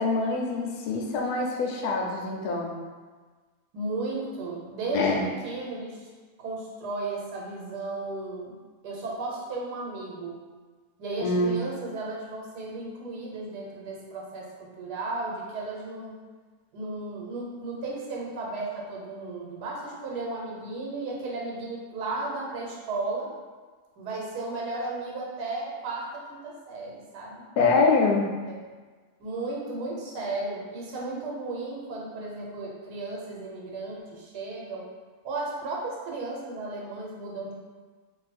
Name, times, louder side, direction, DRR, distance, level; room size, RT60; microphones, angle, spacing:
voice 1, 0.0-2.7 4.9-5.2 11.2-11.6 27.6-28.3, left 3 dB, 80° left, 0 dB, 1.1 m, -24 dB
voice 2, 3.7-6.1 6.4-8.6 8.8-10.4 11.0-16.2 16.7-23.3 24.0-27.4 28.4-28.5 29.2-34.8 35.2-37.5, right 2 dB, 85° right, -3 dB, 1.3 m, -34 dB
2.6 x 2.6 x 4.1 m, 1.4 s
omnidirectional pair, 1.7 m